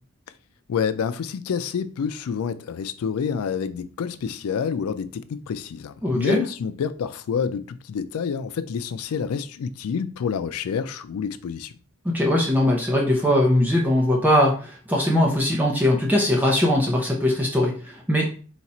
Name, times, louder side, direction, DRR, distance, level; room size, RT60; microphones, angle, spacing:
voice 1, 0.7-11.7, left 6 dB, 90° left, 0.4 m, -28 dB
voice 2, 6.0-6.4 12.0-18.3, left 1 dB, 10° right, 0.6 m, -20 dB
4.1 x 2.4 x 4.2 m
head